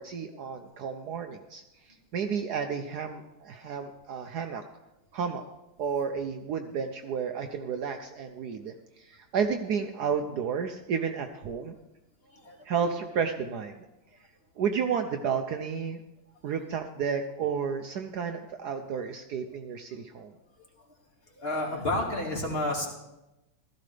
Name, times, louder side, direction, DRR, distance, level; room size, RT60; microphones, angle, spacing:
voice 1, 0.0-4.6 5.1-5.4 5.8-11.7 12.6-13.9 14.6-16.0 16.4-20.3, right 6 dB, 65° right, 6 dB, 1.1 m, -32 dB
voice 2, 21.4-22.9, left 1 dB, 30° left, -2 dB, 2.4 m, -29 dB
16.0 x 13.5 x 3.3 m, 0.95 s
omnidirectional pair, 2.1 m